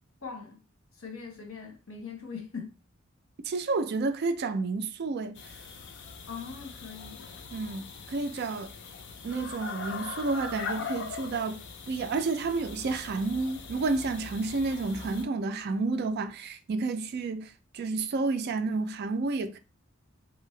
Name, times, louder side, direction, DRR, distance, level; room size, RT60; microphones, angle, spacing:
voice 1, 0.2-0.6 1.0-2.7 6.3-7.4, left 5 dB, 75° left, 0.9 m, -41 dB
voice 2, 3.5-5.4 7.5-8.7 9.2-11.6 11.9-19.6, right 3 dB, 50° right, 0.4 m, -30 dB
sound 1, 5.3-15.2, left 5 dB, 55° left, 0.4 m, -41 dB
2.9 x 2.6 x 3.1 m
head